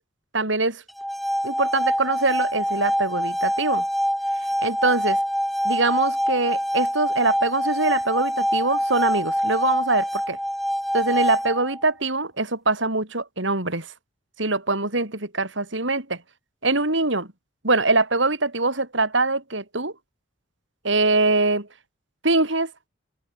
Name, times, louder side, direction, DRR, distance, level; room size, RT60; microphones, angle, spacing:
voice 1, 0.3-0.8 1.4-3.8 4.6-5.2 5.6-10.4 10.9-13.9 14.4-16.2 16.6-17.3 17.6-19.9 20.8-21.7 22.2-22.7, right 3 dB, 65° right, 4.8 m, -23 dB
sound 1, 0.9-11.9, equal, ahead, 2.2 m, -25 dB
head